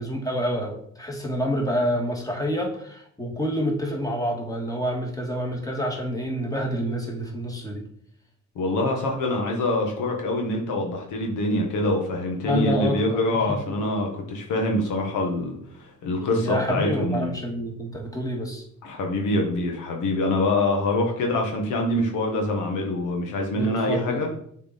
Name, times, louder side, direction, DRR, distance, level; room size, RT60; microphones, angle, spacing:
voice 1, 0.0-7.8 12.4-13.2 13.5-13.8 16.4-18.6 23.5-24.3, equal, 10° left, 0 dB, 1.9 m, -28 dB
voice 2, 8.5-17.3 18.8-24.3, left 1 dB, 85° left, 1 dB, 1.6 m, -25 dB
6.9 x 4.6 x 4.2 m, 0.66 s
cardioid pair, 90°, 30 cm